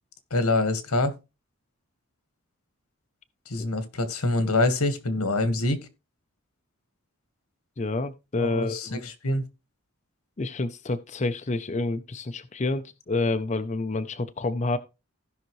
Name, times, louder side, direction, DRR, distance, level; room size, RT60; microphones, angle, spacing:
voice 1, 0.3-1.1 3.5-5.8 8.4-9.4, left 2 dB, 90° left, 1.6 m, -25 dB
voice 2, 7.8-9.0 10.4-14.8, left 2 dB, 30° left, 0.5 m, -28 dB
16.0 x 5.7 x 3.1 m
head